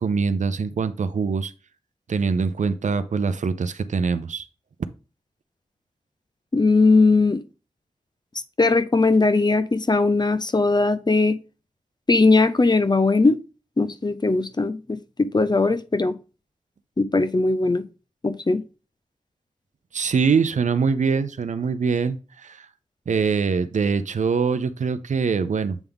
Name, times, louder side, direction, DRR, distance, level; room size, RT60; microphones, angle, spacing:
voice 1, 0.0-1.5 2.1-4.4 19.9-22.7 23.1-25.8, right 5 dB, 85° right, 12 dB, 0.5 m, -23 dB
voice 2, 6.5-7.4 8.6-11.4 12.1-13.4 13.8-16.1 17.0-17.8 18.2-18.6, left 3 dB, 35° left, 13 dB, 0.6 m, -19 dB
8.1 x 3.5 x 3.5 m, 0.33 s
cardioid pair, 40°, 12 cm